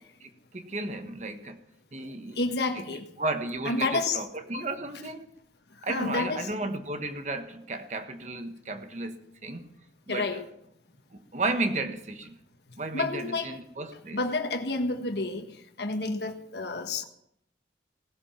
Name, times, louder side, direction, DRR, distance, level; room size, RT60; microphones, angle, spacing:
voice 1, 0.2-1.6 1.9-2.4 2.7-2.8 3.2-5.3 5.8-9.7 10.1-10.4 11.1-12.4 12.8-14.2, right 2 dB, 40° right, 7 dB, 1.3 m, -33 dB
voice 2, 2.4-3.1 3.6-4.2 4.5-4.7 5.9-6.5 10.1-10.5 12.9-13.6 14.1-15.5 15.8-17.0, left 3 dB, 65° left, 6 dB, 1.4 m, -29 dB
18.0 x 12.0 x 5.8 m, 0.77 s
head